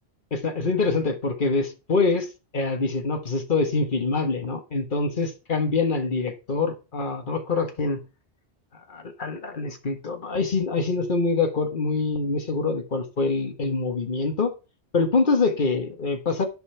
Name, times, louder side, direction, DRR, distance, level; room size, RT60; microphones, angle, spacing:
voice 1, 0.3-8.0 8.9-14.5 14.9-16.5, left 3 dB, 50° left, 5 dB, 1.7 m, -25 dB
10.0 x 5.5 x 5.6 m, 0.31 s
omnidirectional pair, 1.1 m